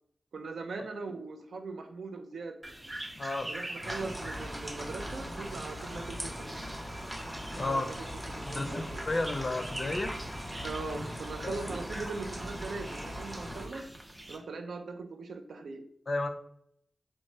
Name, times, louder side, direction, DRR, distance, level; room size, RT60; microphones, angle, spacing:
voice 1, 0.3-2.6 3.5-6.5 7.5-7.9 8.3-9.1 10.6-13.9 14.3-15.8, right 3 dB, 90° right, 6 dB, 0.3 m, -40 dB
sound 1, 2.6-14.4, right 1 dB, 25° right, 0.5 m, -45 dB
voice 2, 3.1-3.5 7.5-7.8 8.4-10.2 11.4-11.6 16.1-16.3, left 2 dB, 50° left, 6 dB, 0.4 m, -32 dB
sound 2, 3.8-13.7, equal, 5° right, 0.9 m, -40 dB
3.0 x 2.1 x 2.6 m, 0.69 s
cardioid pair, 55°, 0 cm